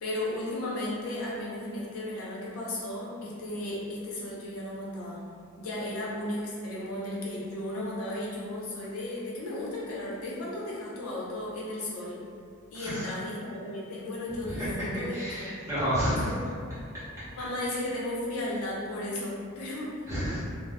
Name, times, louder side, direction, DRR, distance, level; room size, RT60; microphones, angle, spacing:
voice 1, 0.0-5.2 5.6-12.2 12.7-15.4 16.1-16.6 17.3-20.1, left 1 dB, 90° left, -6 dB, 0.7 m, -35 dB
voice 2, 15.1-16.3 20.1-20.4, equal, 15° right, -12 dB, 0.8 m, -30 dB
2.2 x 2.1 x 3.4 m, 2.3 s
head